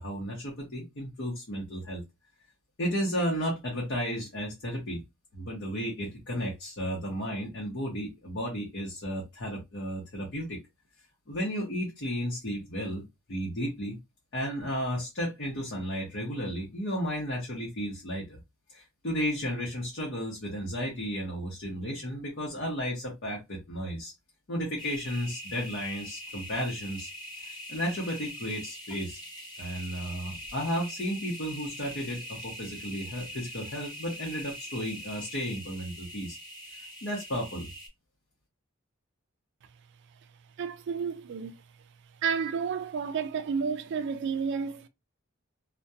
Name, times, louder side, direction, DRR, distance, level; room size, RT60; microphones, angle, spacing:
voice 1, 0.0-2.0 2.8-5.0 5.3-10.6 11.3-14.0 14.3-18.4 18.7-24.1 24.5-27.1 27.4-29.2 29.6-36.4 36.7-37.7, equal, 55° left, 0.8 m, -33 dB
sound 1, 24.8-37.9, equal, 20° left, 0.8 m, -43 dB
voice 2, 40.6-41.6 42.2-44.9, right 6 dB, 60° right, 0.3 m, -31 dB
2.7 x 2.2 x 2.2 m
head